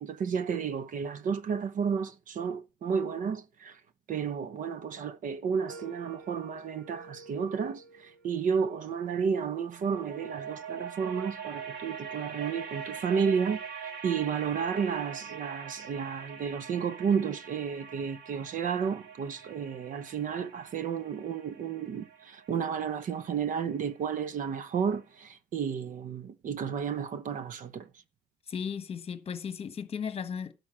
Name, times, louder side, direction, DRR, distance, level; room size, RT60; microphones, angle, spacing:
voice 1, 0.0-3.8 4.1-13.6 14.0-27.9, right 6 dB, 50° right, 0.9 m, -32 dB
sound 1, 5.7-8.9 9.7-24.6, right 7 dB, 75° right, 2.1 m, -44 dB
voice 2, 28.5-30.5, left 7 dB, 35° left, 1.3 m, -35 dB
11.5 x 4.7 x 7.4 m
cardioid pair, 110°, 17 cm